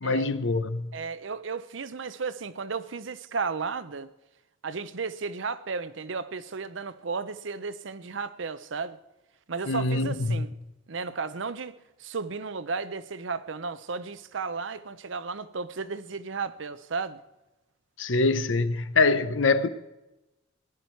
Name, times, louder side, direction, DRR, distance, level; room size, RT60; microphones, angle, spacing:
voice 1, 0.0-0.9 9.7-10.5 18.0-19.7, left 3 dB, 70° left, 0.8 m, -24 dB
voice 2, 0.9-4.1 4.6-9.0 9.5-10.5 10.9-17.2, right 4 dB, 65° right, 0.7 m, -34 dB
18.0 x 11.0 x 4.6 m
head